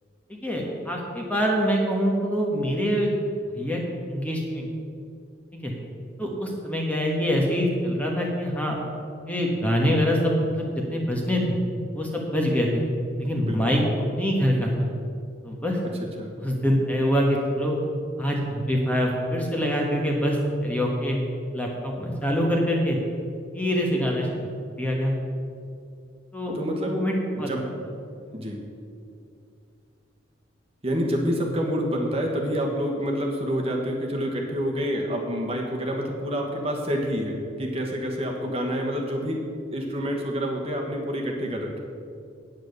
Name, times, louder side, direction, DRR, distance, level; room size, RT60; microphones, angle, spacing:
voice 1, 0.3-3.1 3.5-3.8 4.1-4.7 5.5-5.7 6.2-8.8 9.3-11.6 11.9-12.8 13.2-14.9 15.4-15.8 16.4-17.8 18.2-21.2 21.5-23.0 23.5-24.3 24.8-25.2 26.3-26.6 26.8-27.5, equal, 5° left, -1 dB, 1.3 m, -24 dB
voice 2, 13.4-13.7 15.8-15.9 16.2-16.3 26.5-27.0 27.3-27.7 28.3-28.6 30.8-39.4 39.7-41.8, equal, 30° right, 0 dB, 1.3 m, -28 dB
9.1 x 8.9 x 6.6 m, 2.5 s
head